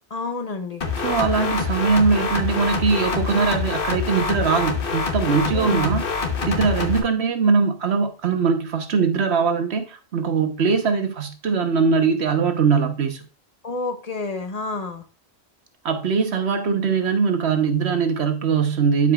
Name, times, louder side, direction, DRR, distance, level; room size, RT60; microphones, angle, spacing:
voice 1, 0.1-0.8 5.5-5.9 13.6-15.0, left 3 dB, 40° left, 0.8 m, -29 dB
sound 1, 0.8-7.0, left 5 dB, 60° left, 1.2 m, -25 dB
voice 2, 1.0-6.0 6.4-13.2 15.8-19.1, right 5 dB, 80° right, 1.3 m, -21 dB
12.0 x 4.9 x 2.3 m
omnidirectional pair, 1.1 m